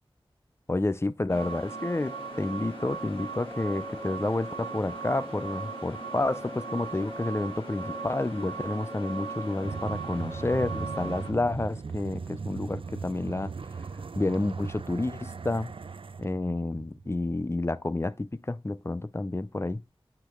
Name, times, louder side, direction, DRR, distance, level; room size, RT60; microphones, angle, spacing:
voice 1, 0.7-13.5 14.2-15.7 16.2-19.8, left 2 dB, 25° left, 0.6 m, -30 dB
sound 1, 1.3-11.3, right 3 dB, 75° left, 4.6 m, -38 dB
sound 2, 9.6-17.8, right 5 dB, 65° right, 0.4 m, -38 dB
8.0 x 5.2 x 3.5 m
wide cardioid pair, 40°, 10 cm